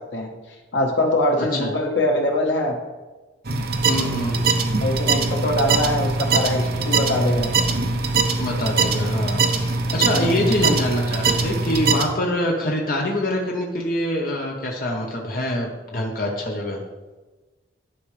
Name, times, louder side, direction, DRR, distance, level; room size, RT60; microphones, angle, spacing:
voice 1, 0.7-2.8 4.8-7.5 9.9-10.4, left 1 dB, 80° left, 2 dB, 1.2 m, -23 dB
voice 2, 1.4-1.7 3.9-4.5 8.3-16.8, left 1 dB, 50° left, -1 dB, 0.9 m, -25 dB
Failing Hard Drive, 3.4-12.0, right 4 dB, 55° right, 0.7 m, -22 dB
11.5 x 4.9 x 3.3 m, 1.2 s
head